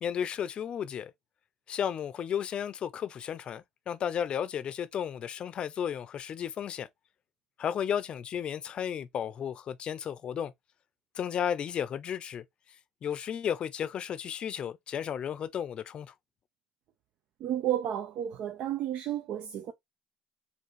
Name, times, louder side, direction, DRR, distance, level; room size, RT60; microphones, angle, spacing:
voice 1, 0.0-1.1 1.7-6.9 7.6-10.5 11.1-12.4 13.0-16.1, left 8 dB, 45° left, 0.5 m, -33 dB
voice 2, 17.4-19.7, right 11 dB, 65° right, 0.5 m, -32 dB
4.6 x 2.7 x 3.0 m
supercardioid pair, 95°, 2 cm